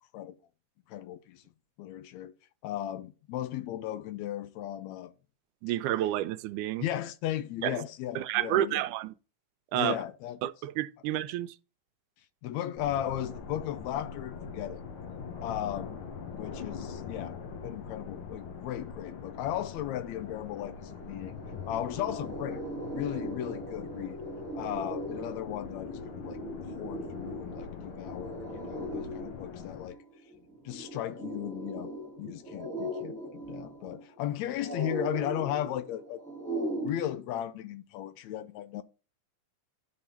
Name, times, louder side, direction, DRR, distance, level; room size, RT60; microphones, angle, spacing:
voice 1, 0.9-1.4 1.8-2.3 2.6-5.1 6.8-8.8 9.7-10.4 12.4-14.8 15.4-16.0 16.3-21.4 21.6-22.6 22.9-24.2 24.5-26.4 26.8-30.0 30.7-31.9 32.2-36.2 36.8-38.8, left 12 dB, 80° left, 1.7 m, -36 dB
voice 2, 5.6-6.8 7.6-7.8 8.2-9.1 9.7-10.0 10.4-11.5, right 13 dB, 85° right, 2.0 m, -30 dB
sound 1, 12.8-29.9, left 6 dB, 60° left, 1.5 m, -43 dB
sound 2, 20.3-20.4 20.7-36.9, right 1 dB, 5° left, 0.7 m, -39 dB
11.0 x 3.7 x 4.3 m
omnidirectional pair, 3.5 m